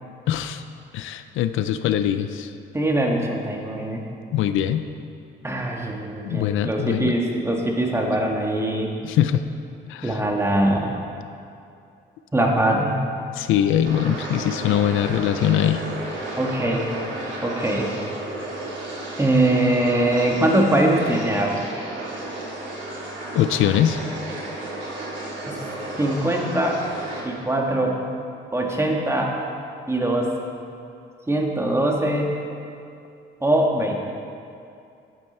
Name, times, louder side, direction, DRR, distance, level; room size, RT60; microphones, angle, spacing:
voice 1, 0.3-0.6 0.9-2.5 4.3-4.8 6.2-7.1 9.0-9.4 9.9-10.2 13.3-15.8 23.3-24.0, left 10 dB, 85° left, 10 dB, 0.5 m, -22 dB
voice 2, 2.7-4.0 5.4-8.9 10.0-10.9 12.3-13.0 16.4-16.9 17.4-17.9 19.2-21.9 25.5-25.6 26.0-26.8 27.2-28.0 28.5-29.3 29.9-30.3 31.3-32.4 33.4-34.0, right 1 dB, 15° right, 0 dB, 1.7 m, -22 dB
sound 1, 13.8-27.2, right 2 dB, 70° right, 2.8 m, -33 dB
11.0 x 9.0 x 4.4 m, 2.5 s
cardioid pair, 90°, 20 cm